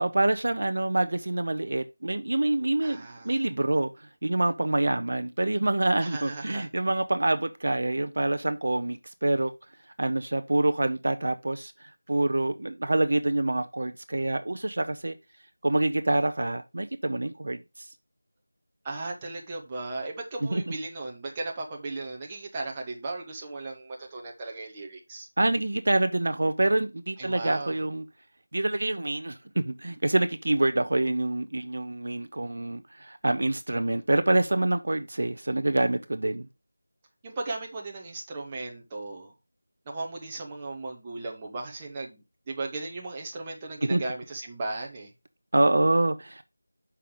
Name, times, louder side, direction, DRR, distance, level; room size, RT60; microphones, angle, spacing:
voice 1, 0.0-9.5 10.0-15.2 15.6-17.9 20.5-20.6 25.4-28.1 28.5-36.5 43.9-44.0 45.5-46.4, right 2 dB, 55° right, 0.6 m, -26 dB
voice 2, 2.8-3.4 6.0-6.7 18.8-25.3 27.2-27.8 37.2-39.3 39.9-45.1, right 2 dB, 10° right, 0.9 m, -36 dB
6.4 x 5.6 x 3.7 m
figure-of-eight pair, 175°, 0 cm